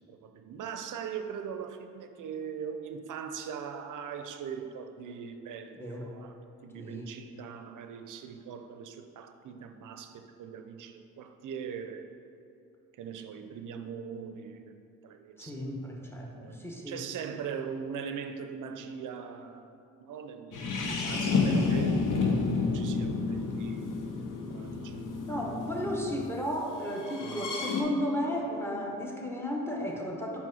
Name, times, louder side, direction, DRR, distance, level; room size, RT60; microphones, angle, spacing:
voice 1, 0.1-12.1 13.0-14.7 15.0-15.8 16.4-23.9 24.5-25.2 27.2-27.5, right 7 dB, 65° right, 7 dB, 0.6 m, -41 dB
voice 2, 5.8-6.1 6.7-7.1 15.4-17.0 25.3-30.4, equal, 5° left, -2 dB, 1.2 m, -34 dB
sound 1, 20.5-26.2 27.0-27.8, left 4 dB, 65° left, 0.8 m, -30 dB
5.5 x 4.6 x 4.1 m, 2.7 s
supercardioid pair, 55°, 34 cm